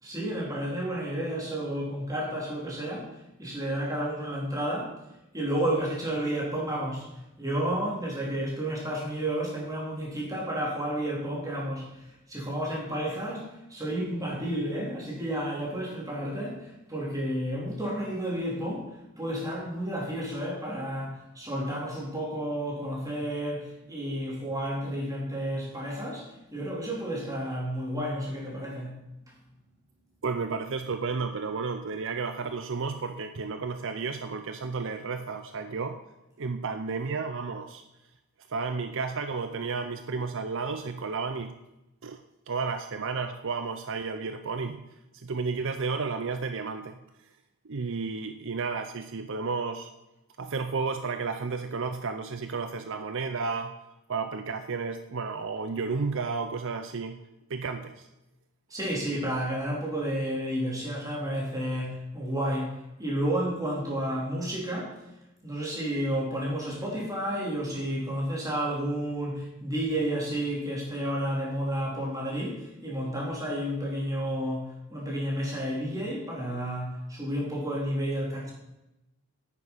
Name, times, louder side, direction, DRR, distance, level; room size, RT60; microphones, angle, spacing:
voice 1, 0.0-3.1 3.4-4.9 5.3-7.1 7.4-26.3 26.5-29.0 58.7-64.9 65.4-78.5, right 1 dB, 15° right, -4 dB, 3.9 m, -31 dB
voice 2, 30.2-36.0 36.4-37.8 38.5-41.5 42.0-42.2 42.5-44.8 45.1-47.0 47.6-49.9 50.4-53.7 54.1-57.2 57.5-58.1, right 4 dB, 60° right, 8 dB, 0.7 m, -32 dB
9.9 x 9.2 x 5.7 m, 0.92 s
head